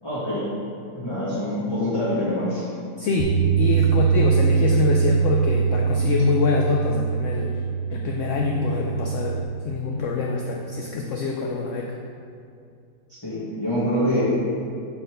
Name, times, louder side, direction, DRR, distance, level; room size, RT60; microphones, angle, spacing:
voice 1, 0.0-0.4 0.9-2.6 13.2-14.2, equal, 15° left, -12 dB, 1.6 m, -25 dB
voice 2, 3.0-7.5 7.9-9.4 9.6-11.9, left 4 dB, 65° left, 0 dB, 0.8 m, -25 dB
Bass guitar, 3.2-9.4, right 6 dB, 60° right, 0.9 m, -22 dB
7.4 x 4.4 x 4.9 m, 2.4 s
omnidirectional pair, 1.7 m